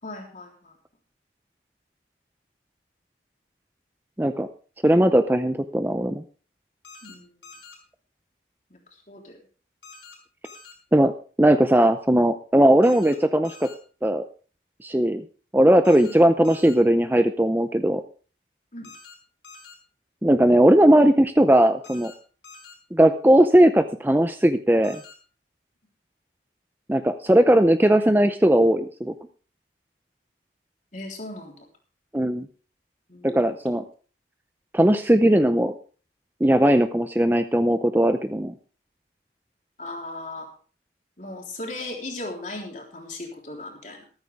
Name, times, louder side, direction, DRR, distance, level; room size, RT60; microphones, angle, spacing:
voice 1, 0.0-0.8 7.0-7.4 8.7-8.8 9.1-9.4 12.6-12.7 16.0-16.2 18.7-18.9 30.9-31.7 33.1-33.8 39.8-40.5 41.2-44.0, left 2 dB, 40° left, 1 dB, 3.6 m, -37 dB
voice 2, 4.8-6.2 10.9-11.1 11.4-13.7 14.0-14.3 14.8-15.2 15.5-18.0 20.2-22.1 22.9-25.0 26.9-29.1 32.1-32.5 33.2-33.8 34.7-35.7 36.4-38.5, right 1 dB, 10° right, 9 dB, 0.5 m, -18 dB
sound 1, 6.8-7.2 7.4-7.8 9.8-10.2 10.4-10.7 12.8-13.2 13.4-13.8 15.8-16.2 16.4-16.8 18.8-19.1 19.4-19.8 21.8-22.1 22.4-22.7 24.8-25.1, left 4 dB, 80° left, 4.7 m, -46 dB
14.0 x 13.5 x 3.6 m, 0.39 s
head